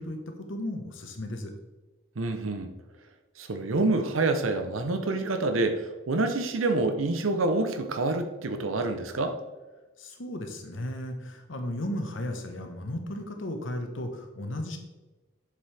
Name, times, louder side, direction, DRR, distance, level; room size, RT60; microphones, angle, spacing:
voice 1, 0.0-1.5 10.0-14.8, left 1 dB, 70° left, 5 dB, 1.1 m, -35 dB
voice 2, 2.2-2.7 3.4-9.4, right 2 dB, 80° right, 7 dB, 0.8 m, -27 dB
7.4 x 6.8 x 3.4 m, 1.2 s
head